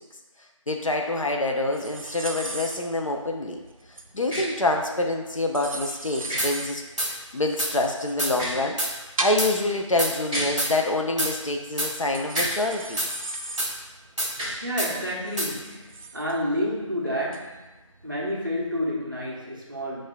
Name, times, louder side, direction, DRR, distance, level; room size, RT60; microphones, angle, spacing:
voice 1, 0.7-3.6 4.1-6.8 7.1-8.8 9.2-13.1, left 2 dB, 70° left, 2 dB, 0.6 m, -26 dB
sound 1, 1.7-18.8, right 2 dB, 85° right, 0.5 m, -38 dB
sound 2, 4.3-4.4 6.3-6.4 8.3-8.6 10.3-10.5 12.3-12.6 14.3-14.6, equal, 15° right, 1.3 m, -30 dB
sound 3, 6.4-6.5 7.0-7.1 7.6-7.7 8.2-8.3 8.8-8.9 9.4-9.5 10.0-10.1 10.6-10.7 11.2-11.3 11.8-11.9 12.4-12.5 13.0-13.1 13.6-13.7 14.2-14.3 14.8-14.9 15.4-15.5, right 1 dB, 60° right, 0.9 m, -26 dB
voice 2, 14.6-17.7 18.0-20.0, equal, 40° right, -5 dB, 0.7 m, -29 dB
6.4 x 2.4 x 2.2 m, 1.1 s
figure-of-eight pair, 175°, 17 cm